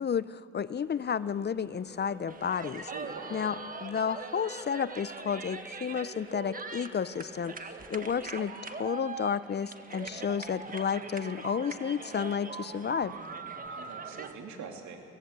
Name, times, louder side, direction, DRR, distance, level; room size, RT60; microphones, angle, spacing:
voice 1, 0.0-2.9 3.3-7.5 7.9-13.2, left 7 dB, 35° left, 17 dB, 0.6 m, -32 dB
sound 1, 0.8-8.2, left 1 dB, 10° right, 7.1 m, -52 dB
sound 2, 2.3-14.3, right 4 dB, 30° right, 1.7 m, -42 dB
voice 2, 2.9-3.5 13.6-15.0, right 5 dB, 70° right, 2 dB, 3.0 m, -44 dB
24.0 x 17.5 x 8.1 m, 2.5 s
cardioid pair, 90°, 30 cm